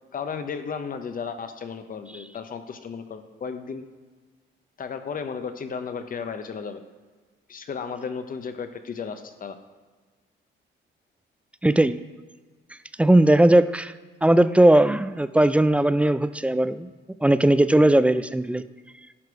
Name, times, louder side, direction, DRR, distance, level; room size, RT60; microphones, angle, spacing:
voice 1, 0.1-3.8 4.8-6.8 7.5-9.6, left 6 dB, 45° left, 8 dB, 0.8 m, -34 dB
voice 2, 11.6-12.0 13.0-13.9 14.2-16.9 17.2-18.6, right 1 dB, 5° right, 13 dB, 0.3 m, -18 dB
11.0 x 4.8 x 4.8 m, 1.4 s
cardioid pair, 90°, 20 cm